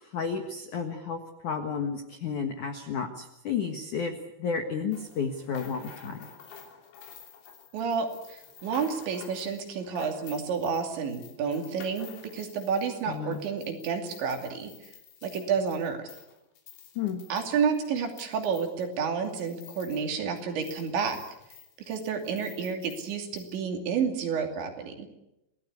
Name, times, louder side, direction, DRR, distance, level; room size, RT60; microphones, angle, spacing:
voice 1, 0.0-4.1 4.4-6.3 13.1-13.4 17.0-17.2, left 6 dB, 65° left, 5 dB, 2.0 m, -32 dB
sound 1, 4.9-20.1 20.4-23.6, left 7 dB, 85° left, 6.0 m, -51 dB
voice 2, 7.7-14.7 15.2-16.1 17.3-21.2 21.9-25.1, right 6 dB, 65° right, 4 dB, 4.8 m, -30 dB
28.0 x 18.0 x 8.2 m, 0.88 s
omnidirectional pair, 5.9 m